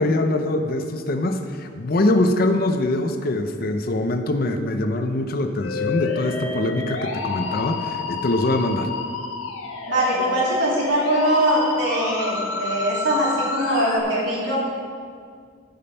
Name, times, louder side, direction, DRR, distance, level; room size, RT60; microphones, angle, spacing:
voice 1, 0.0-8.9, left 1 dB, 45° left, 7 dB, 0.6 m, -23 dB
Musical instrument, 5.6-14.0, left 4 dB, 90° left, 1.3 m, -30 dB
voice 2, 9.9-14.6, equal, 65° right, -5 dB, 2.8 m, -22 dB
13.0 x 5.4 x 5.6 m, 2.1 s
head